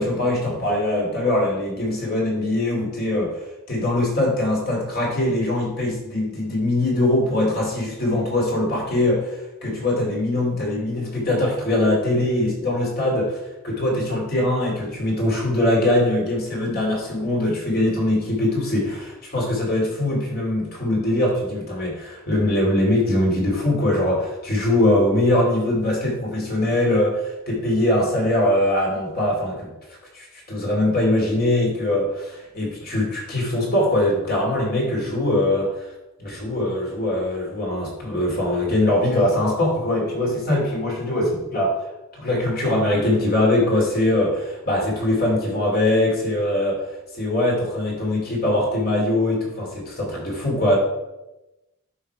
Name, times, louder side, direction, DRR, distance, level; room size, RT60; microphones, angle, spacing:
voice 1, 0.0-3.4 3.7-35.9 36.2-41.7 42.2-46.8 47.1-50.8, left 1 dB, 45° left, -2 dB, 2.8 m, -22 dB
11.5 x 5.1 x 4.7 m, 0.98 s
head